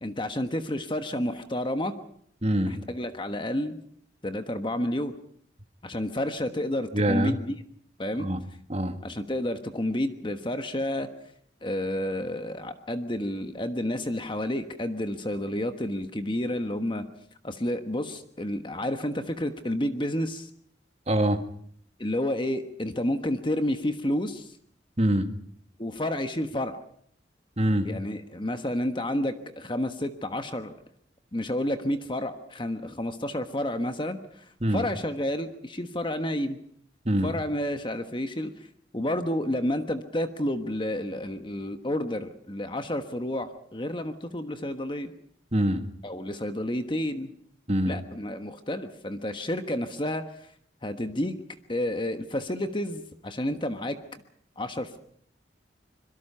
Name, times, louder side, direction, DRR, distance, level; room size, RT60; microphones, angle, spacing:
voice 1, 0.0-1.9 2.6-3.8 4.2-5.1 5.8-7.6 8.0-8.3 9.0-11.1 11.6-17.0 17.4-20.5 22.0-24.6 25.8-26.8 27.8-30.7 31.3-36.6 37.2-38.7 38.9-45.1 46.0-47.3 47.9-50.5 50.8-51.4 51.7-54.0 54.6-55.0, left 1 dB, 25° left, 8 dB, 1.3 m, -30 dB
voice 2, 2.4-2.8 6.9-7.4 8.2-8.4 8.7-9.0 21.1-21.4 25.0-25.3 27.6-27.9 34.6-34.8 37.1-37.3 45.5-45.8 47.7-47.9, right 1 dB, 35° right, 8 dB, 1.9 m, -24 dB
25.5 x 22.5 x 5.7 m, 0.64 s
head